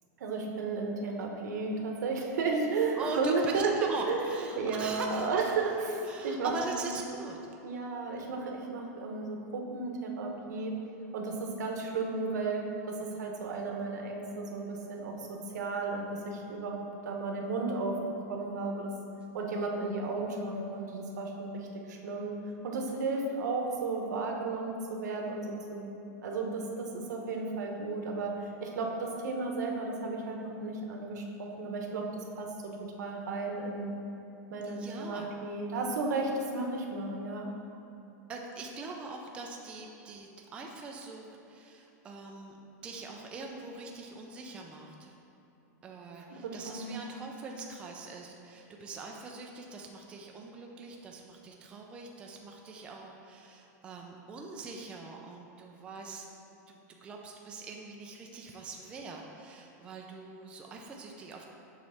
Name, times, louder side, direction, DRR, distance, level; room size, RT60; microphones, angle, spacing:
voice 1, 0.2-6.5 6.8-7.0 7.6-10.7 11.1-18.0 18.3-18.9 19.3-22.4 22.6-25.4 25.7-25.9 26.2-28.4 28.6-32.5 33.0-33.9 34.5-37.5 46.4-47.0, right 3 dB, 85° right, 1 dB, 1.0 m, -33 dB
voice 2, 3.0-5.5 6.1-7.4 34.6-35.3 38.3-42.6 42.8-45.1 45.8-56.3 56.7-61.5, right 3 dB, 10° right, 0 dB, 0.3 m, -42 dB
7.2 x 3.1 x 5.7 m, 2.9 s
supercardioid pair, 175°, 9 cm